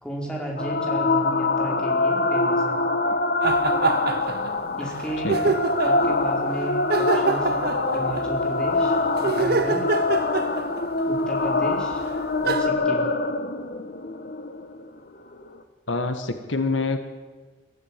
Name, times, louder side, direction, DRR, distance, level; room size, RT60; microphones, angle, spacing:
voice 1, 0.0-2.8 4.8-5.4 5.8-9.9 11.1-12.0 12.4-13.1, right 1 dB, 5° left, -2 dB, 4.5 m, -34 dB
sound 1, 0.6-15.6, left 2 dB, 50° left, 1.4 m, -24 dB
sound 2, 3.4-4.5 4.8-4.9 5.3-6.1 6.9-8.3 9.2-11.0 11.9-12.0 12.4-12.7, right 3 dB, 50° right, 1.1 m, -25 dB
voice 2, 5.2-5.6 15.9-17.0, left 3 dB, 80° left, 7 dB, 1.8 m, -26 dB
22.5 x 14.0 x 9.0 m, 1.4 s
head